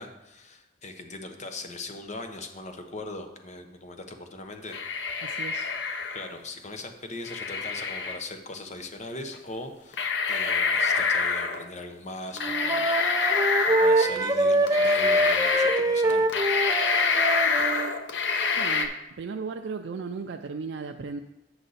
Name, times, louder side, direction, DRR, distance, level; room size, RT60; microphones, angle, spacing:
voice 1, 0.0-4.8 6.1-16.3, left 2 dB, 40° left, 6 dB, 0.9 m, -40 dB
sound 1, 4.7-6.4 7.2-8.2 9.3-9.4 9.9-11.6 12.4-14.2 14.7-15.8 16.1-18.9, left 5 dB, 75° left, 0.8 m, -26 dB
voice 2, 5.2-5.7 18.5-21.2, right 4 dB, 75° right, 5 dB, 0.4 m, -36 dB
Wind instrument woodwind instrument, 12.4-17.9, right 1 dB, 20° right, 0.5 m, -24 dB
7.9 x 6.3 x 4.1 m, 0.87 s
head